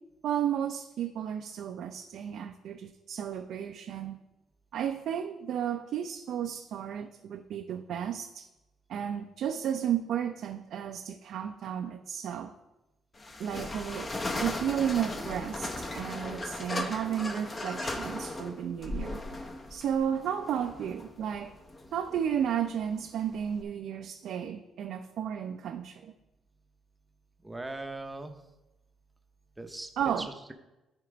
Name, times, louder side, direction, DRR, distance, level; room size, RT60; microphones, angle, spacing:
voice 1, 0.2-4.2 4.7-8.5 8.9-12.5 13.4-14.1 14.4-19.2 19.7-21.5 21.9-26.1 30.0-30.3, right 9 dB, 65° right, 4 dB, 0.5 m, -33 dB
sound 1, 13.2-23.6, left 2 dB, 25° left, 0.7 m, -37 dB
voice 2, 27.4-28.4 29.6-30.5, right 2 dB, 10° right, 6 dB, 0.7 m, -40 dB
11.5 x 4.4 x 5.0 m, 0.98 s
cardioid pair, 130°, 0 cm